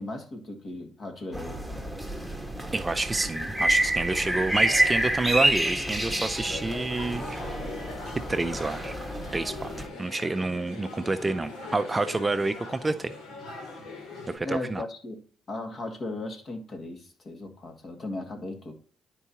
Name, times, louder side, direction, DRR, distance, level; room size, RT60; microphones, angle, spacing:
voice 1, 0.0-1.7 14.4-15.2 15.5-18.7, left 2 dB, 45° left, 2.0 m, -36 dB
sound 1, 1.3-9.9, right 1 dB, 5° left, 1.6 m, -28 dB
voice 2, 2.7-7.4 8.3-9.0 9.3-9.7 10.0-13.1 14.3-14.8, right 3 dB, 20° right, 0.4 m, -28 dB
sound 2, 6.5-14.4, left 3 dB, 85° left, 2.5 m, -41 dB
11.0 x 4.6 x 2.8 m
cardioid pair, 90°, 0 cm